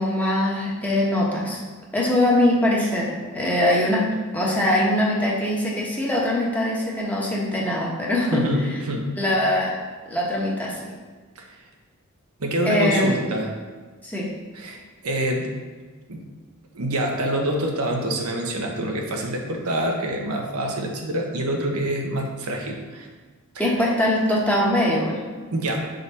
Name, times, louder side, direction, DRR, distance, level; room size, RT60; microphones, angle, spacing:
voice 1, 0.0-1.6 1.9-4.1 4.3-8.8 9.2-9.8 10.1-10.9 12.6-13.2 14.0-14.3 23.6-25.2, left 1 dB, 5° left, -4 dB, 1.1 m, -22 dB
voice 2, 8.3-9.1 11.4-11.5 12.4-13.5 14.5-14.8 15.0-15.5 16.1-16.2 16.7-23.1 25.5-25.9, right 1 dB, 85° right, 1 dB, 1.0 m, -26 dB
6.6 x 3.9 x 4.1 m, 1.4 s
head